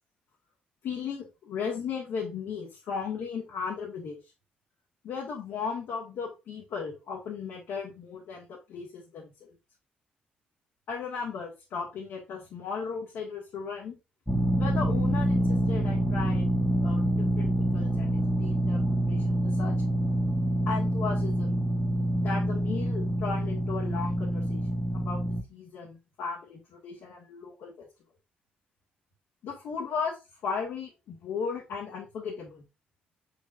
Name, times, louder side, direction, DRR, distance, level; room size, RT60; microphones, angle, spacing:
voice 1, 0.8-4.2 5.0-9.5 10.9-14.0 14.6-16.4 16.8-18.8 19.1-19.7 20.7-21.7 22.2-27.9 29.4-32.6, left 5 dB, 65° left, -3 dB, 1.9 m, -36 dB
sound 1, 14.3-25.4, right 1 dB, ahead, 1.6 m, -26 dB
7.1 x 5.1 x 2.6 m, 0.27 s
hypercardioid pair, 45°, 5 cm